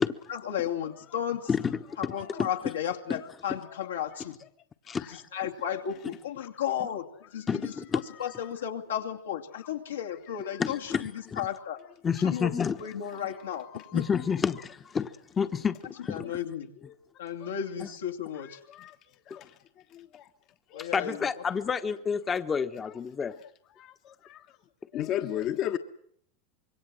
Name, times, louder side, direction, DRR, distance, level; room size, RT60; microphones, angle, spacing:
voice 1, 0.3-1.5 2.0-4.4 5.1-7.7 8.2-11.8 12.2-12.5 12.8-14.0 16.1-16.7 17.2-18.6 20.7-21.3, left 9 dB, 85° left, 2.7 m, -34 dB
voice 2, 1.5-2.1 2.4-2.5 4.9-5.2 7.5-8.0 10.6-11.4 12.0-12.8 13.9-15.1 15.4-16.4 20.8-23.3, left 6 dB, 25° left, 1.1 m, -29 dB
voice 3, 13.4-14.0 17.4-17.5 18.7-18.9 19.3-19.5 19.9-20.3 20.7-20.9 23.8-24.4 24.9-25.8, left 11 dB, 45° left, 1.3 m, -34 dB
25.5 x 22.5 x 7.8 m
hypercardioid pair, 95°, 0 cm